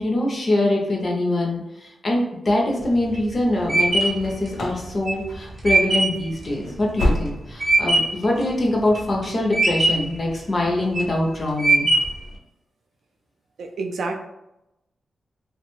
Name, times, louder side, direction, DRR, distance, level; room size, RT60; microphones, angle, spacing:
voice 1, 0.0-11.9, left 1 dB, 30° left, -1 dB, 0.5 m, -23 dB
sound 1, 2.8-8.3 8.7-9.2 9.5-10.2 10.7-11.2 11.6-12.3, right 2 dB, 20° right, 0.6 m, -21 dB
sound 2, 4.1-4.9 5.1-5.6 5.9-6.0 6.5-7.7 8.0-8.1 8.7-8.8, left 1 dB, 80° left, 0.6 m, -27 dB
voice 2, 13.6-14.2, right 3 dB, 65° right, 4 dB, 0.3 m, -28 dB
2.8 x 2.1 x 3.0 m, 0.90 s
wide cardioid pair, 165°, 0 cm